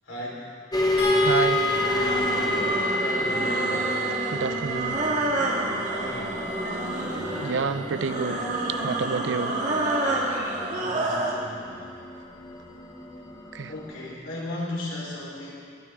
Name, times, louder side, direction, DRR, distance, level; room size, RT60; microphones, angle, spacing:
voice 1, 0.0-0.6 2.9-3.9 5.9-6.5 10.7-11.9 13.7-15.6, left 1 dB, 75° left, -5 dB, 3.9 m, -36 dB
sound 1, 0.7-14.1, equal, 20° left, 1.1 m, -30 dB
sound 2, 1.0-7.3 8.8-9.0 9.4-9.5, left 5 dB, 60° left, 3.1 m, -35 dB
voice 2, 1.2-1.7 4.3-5.0 7.4-8.4 8.8-9.6 13.5-13.7, right 5 dB, 70° right, 13 dB, 0.4 m, -29 dB
sound 3, 1.5-11.4, right 2 dB, 40° right, 1.7 m, -29 dB
21.5 x 9.7 x 3.6 m, 2.2 s
head